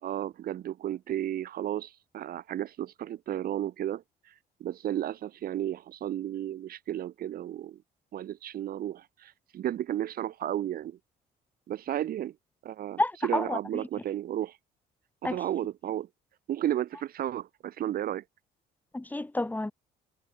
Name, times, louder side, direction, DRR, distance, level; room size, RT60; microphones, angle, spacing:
voice 1, 0.0-4.3 4.6-7.8 8.1-11.0 11.7-12.3 12.6-14.6 15.2-16.1 16.5-18.2, right 12 dB, 60° right, 3.1 m, -33 dB
voice 2, 13.0-13.8 15.2-15.4 18.9-19.7, left 2 dB, 10° left, 6.6 m, -30 dB
cardioid pair, 110°, 17 cm